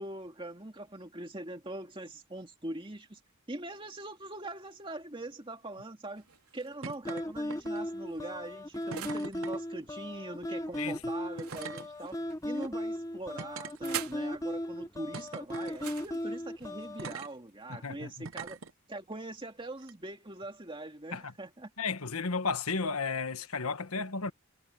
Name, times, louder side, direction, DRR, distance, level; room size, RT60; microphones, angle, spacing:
voice 1, 0.0-3.2 3.5-6.3 6.5-18.6 18.9-21.7, right 1 dB, 25° right, 2.2 m, -42 dB
sound 1, 6.2-7.0 7.7-9.3 11.3-12.5 13.3-14.3 15.7-17.6, right 9 dB, 80° right, 3.6 m, -45 dB
sound 2, 6.8-7.2 7.5-7.9 8.9-9.6 10.7-10.8 11.4-11.9 12.5-12.7 13.4-14.3 15.1-15.8 17.0-17.3 18.2-18.7 19.8-19.9, right 5 dB, 60° right, 0.8 m, -43 dB
sound 3, 7.1-17.1, left 1 dB, 15° left, 1.0 m, -37 dB
voice 2, 17.7-18.1 21.1-21.2 21.8-24.3, left 4 dB, 75° left, 1.4 m, -33 dB
head